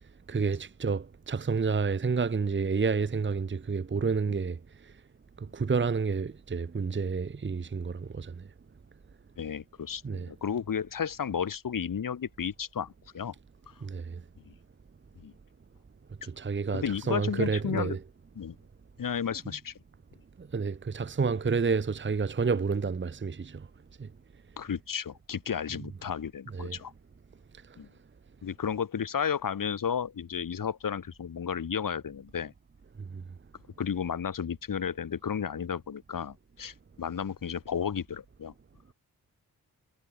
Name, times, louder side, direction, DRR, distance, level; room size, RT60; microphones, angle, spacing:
voice 1, 0.3-4.6 5.5-8.3 10.0-10.3 13.8-14.2 16.2-18.0 20.5-23.7 24.0-24.1 26.5-26.8, right 5 dB, 30° right, 1.0 m, -29 dB
voice 2, 9.4-13.3 15.2-15.3 16.7-18.0 18.4-18.6 19.0-19.7 24.6-26.9 27.8-27.9 28.4-32.5 33.8-38.5, left 7 dB, 60° left, 1.8 m, -33 dB
cardioid pair, 45°, 37 cm